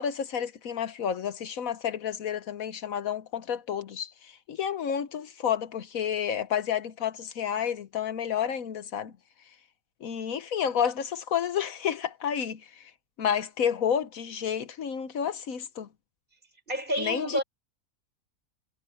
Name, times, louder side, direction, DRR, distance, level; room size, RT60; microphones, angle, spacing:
voice 1, 0.0-9.1 10.0-12.9 13.2-15.9 17.0-17.4, left 8 dB, 75° left, 1.4 m, -30 dB
voice 2, 16.7-17.4, right 1 dB, 35° right, 6.4 m, -29 dB
omnidirectional pair, 1.5 m